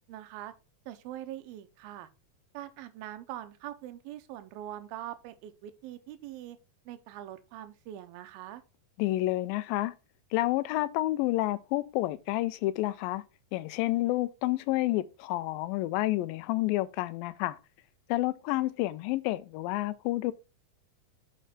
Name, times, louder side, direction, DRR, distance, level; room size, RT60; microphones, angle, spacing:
voice 1, 0.1-0.5 0.9-2.1 2.5-6.6 6.9-8.6, right 12 dB, 80° right, 2.5 m, -43 dB
voice 2, 9.0-9.9 10.3-13.2 13.5-17.6 18.1-20.3, left 17 dB, 80° left, 2.1 m, -29 dB
6.4 x 5.0 x 4.3 m
omnidirectional pair, 4.4 m